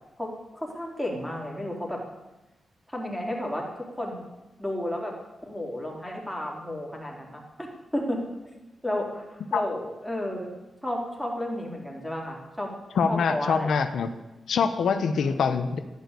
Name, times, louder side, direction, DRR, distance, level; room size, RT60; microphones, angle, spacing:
voice 1, 0.2-2.0 2.9-4.2 4.6-5.1 5.4-7.7 7.9-8.2 8.8-10.5 10.8-12.7 13.1-13.7 15.1-15.4, left 1 dB, ahead, -2 dB, 3.8 m, -32 dB
voice 2, 13.0-14.1 14.5-15.8, left 6 dB, 85° left, 8 dB, 0.9 m, -24 dB
12.5 x 10.0 x 8.3 m, 1.1 s
cardioid pair, 95°, 0 cm